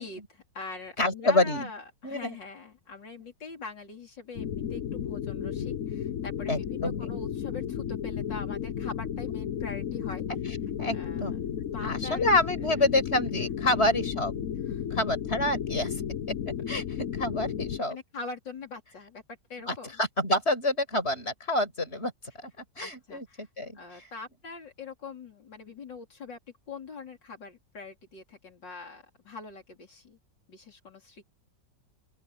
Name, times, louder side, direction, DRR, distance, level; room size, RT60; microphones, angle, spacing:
voice 1, 0.0-10.5 10.9-11.4 11.7-12.3 13.7-13.9 14.7-15.0 17.9-19.2 19.5-20.0 22.8-23.5 23.7-26.4 26.7-30.2 30.5-31.2, left 4 dB, 80° left, 4.6 m, -43 dB
voice 2, 1.0-1.7 2.0-2.4 6.5-7.1 10.8-11.3 11.8-14.4 14.9-16.0 16.7-16.8 17.1-18.0 19.7-22.1 22.4-24.0, left 2 dB, 35° left, 6.9 m, -28 dB
sound 1, 4.3-17.8, left 9 dB, 55° left, 1.2 m, -33 dB
open air
omnidirectional pair, 1.9 m